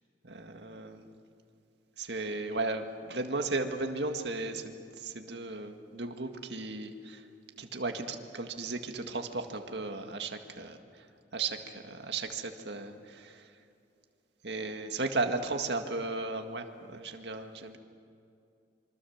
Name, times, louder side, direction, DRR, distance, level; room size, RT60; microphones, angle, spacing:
voice 1, 0.2-1.1 2.0-7.2 7.6-10.7 11.3-13.5 14.4-17.8, right 3 dB, 75° right, 5 dB, 1.9 m, -35 dB
26.5 x 25.0 x 7.3 m, 2.5 s
head